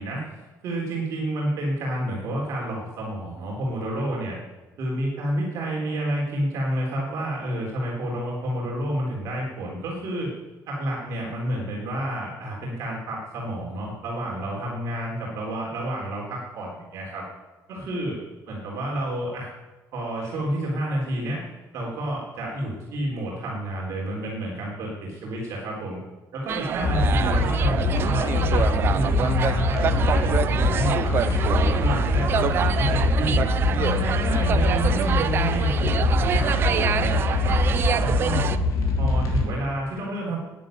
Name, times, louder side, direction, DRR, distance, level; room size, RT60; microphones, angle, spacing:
voice 1, 0.0-4.4 4.8-10.3 10.7-17.2 17.7-18.2 18.5-19.5 19.9-21.5 21.7-26.0 26.3-33.4 33.8-37.6 38.0-38.5 39.0-40.4, right 1 dB, 50° right, -3 dB, 3.6 m, -30 dB
sound 1, 26.5-38.6, right 8 dB, 35° right, 0.5 m, -27 dB
sound 2, 26.8-39.4, left 3 dB, 55° left, 3.2 m, -23 dB
11.0 x 9.9 x 9.1 m, 1.2 s
cardioid pair, 170°, 7 cm